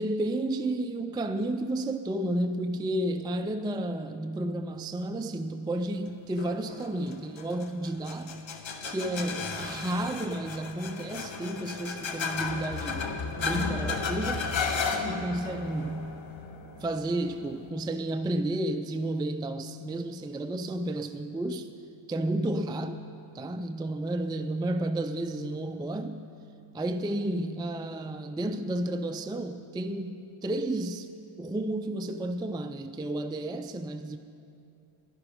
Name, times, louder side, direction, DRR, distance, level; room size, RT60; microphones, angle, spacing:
voice 1, 0.0-8.4 8.8-13.1 13.4-14.5 15.0-16.2 16.8-21.7 22.1-23.0 23.3-26.2 26.7-31.1 31.4-34.2, right 1 dB, 10° right, 0.3 m, -32 dB
sound 1, 6.4-17.7, left 4 dB, 65° left, 1.0 m, -34 dB
12.0 x 10.5 x 5.1 m
wide cardioid pair, 95°, 50 cm